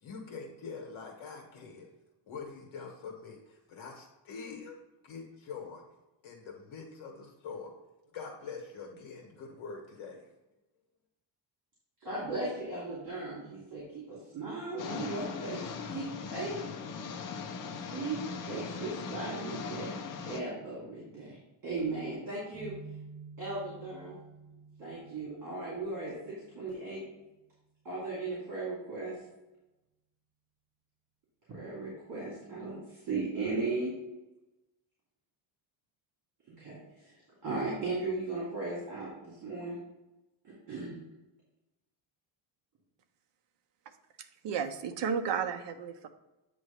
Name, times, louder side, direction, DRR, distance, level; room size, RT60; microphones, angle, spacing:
voice 1, 0.0-1.9 2.3-5.8 6.2-7.7 8.1-10.3, left 5 dB, 75° left, 1 dB, 1.5 m, -44 dB
voice 2, 12.0-16.6 17.6-20.0 20.2-21.4 21.6-22.7 23.4-24.2 24.8-27.0 27.8-29.2 31.5-33.9 36.6-37.2 37.4-39.8 40.4-40.9, right 3 dB, 45° right, -7 dB, 2.7 m, -37 dB
sound 1, 14.8-20.4, left 5 dB, 45° left, 0.7 m, -40 dB
sound 2, 22.5-28.3, right 5 dB, 15° right, 1.2 m, -51 dB
voice 3, 44.2-46.1, right 7 dB, 60° right, 8 dB, 0.8 m, -33 dB
8.6 x 3.1 x 5.7 m, 1.0 s
cardioid pair, 160°, 48 cm